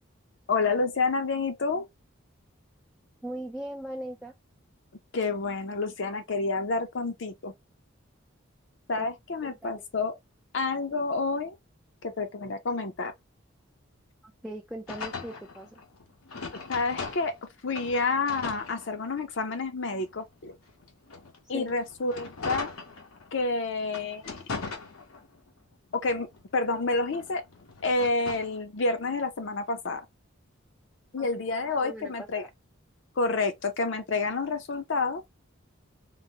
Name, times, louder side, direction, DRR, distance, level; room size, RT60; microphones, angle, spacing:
voice 1, 0.5-1.9 5.1-7.5 8.9-10.1 10.5-11.6 12.0-13.1 16.7-17.3 17.6-20.6 21.5-22.7 23.3-24.4 25.9-26.3 26.5-27.4 27.8-30.1 31.1-32.5 33.2-35.2, left 3 dB, 60° left, 0.6 m, -29 dB
voice 2, 3.2-4.3 9.0-9.1 9.4-9.8 14.4-15.7 21.5-21.7 31.2-31.3 31.7-32.5, right 1 dB, 5° right, 0.3 m, -39 dB
sound 1, 14.9-17.5 17.7-19.4 19.9-23.4 23.9-25.5 25.9-28.6, left 4 dB, 90° left, 0.9 m, -40 dB
3.8 x 2.0 x 2.7 m
head